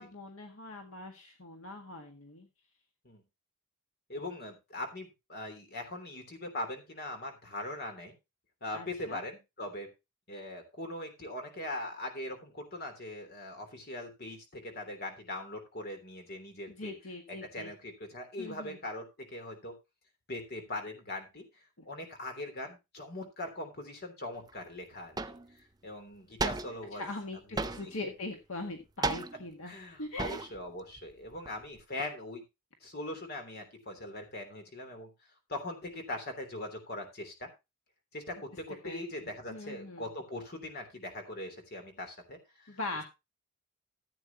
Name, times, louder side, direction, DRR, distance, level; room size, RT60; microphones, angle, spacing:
voice 1, 0.0-2.5 8.7-9.2 16.8-17.7 18.4-18.8 21.8-21.9 27.0-29.7 30.0-30.4 38.8-40.1 42.7-43.0, left 2 dB, 70° left, 3 dB, 1.9 m, -41 dB
voice 2, 4.1-8.1 8.6-9.9 10.3-16.9 17.3-19.7 20.3-21.5 21.8-25.2 25.6-27.1 27.5-27.9 29.6-32.4 32.8-35.1 35.5-37.5 38.1-42.8, left 1 dB, 45° left, 5 dB, 3.3 m, -41 dB
sound 1, 24.5-24.6 25.2-25.5 26.4-26.9 27.6-28.1 29.0-29.6 30.2-30.7 31.0-31.8, right 3 dB, 20° right, 0.5 m, -35 dB
14.5 x 8.8 x 2.9 m, 0.25 s
head